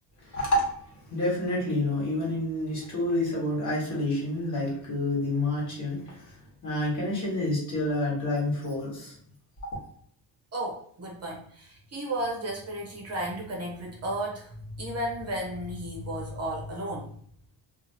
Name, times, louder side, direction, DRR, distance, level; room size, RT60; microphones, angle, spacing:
voice 1, 0.2-6.3 6.6-9.2, left 1 dB, 45° left, -5 dB, 1.3 m, -28 dB
voice 2, 10.5-17.1, right 1 dB, 35° right, -1 dB, 0.7 m, -34 dB
2.7 x 2.5 x 2.7 m, 0.62 s
cardioid pair, 155°, 43 cm